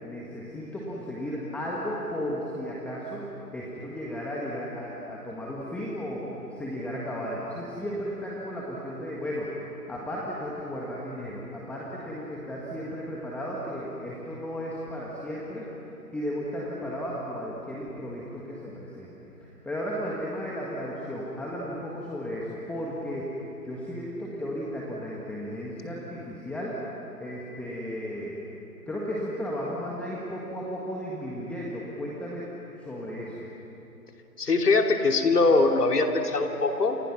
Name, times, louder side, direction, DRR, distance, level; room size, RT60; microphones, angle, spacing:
voice 1, 0.0-3.2 3.5-9.5 9.9-15.7 16.1-19.1 19.4-23.3 23.6-26.8 27.2-28.4 28.9-32.5 32.8-33.4, equal, 5° left, -5 dB, 1.6 m, -34 dB
voice 2, 34.4-37.0, left 3 dB, 75° left, 3 dB, 3.0 m, -22 dB
28.5 x 28.5 x 6.1 m, 3.0 s
figure-of-eight pair, 145°, 47 cm